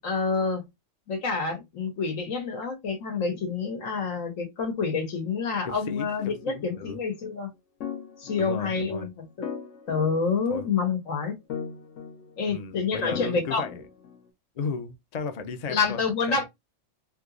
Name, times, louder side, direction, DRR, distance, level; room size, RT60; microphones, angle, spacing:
voice 1, 0.0-0.6 1.1-7.5 8.2-9.1 9.4-9.5 9.9-11.4 12.4-13.6 15.7-16.4, left 5 dB, 90° left, 1.6 m, -28 dB
voice 2, 5.6-7.0 8.3-9.1 10.5-10.7 12.5-13.8 14.6-16.0 16.3-16.4, left 5 dB, 50° left, 0.5 m, -35 dB
sound 1, 6.2-6.7 7.8-8.9 9.4-10.8 11.5-12.6 13.1-14.2, left 7 dB, 70° left, 1.1 m, -39 dB
3.4 x 2.9 x 2.4 m
omnidirectional pair, 1.3 m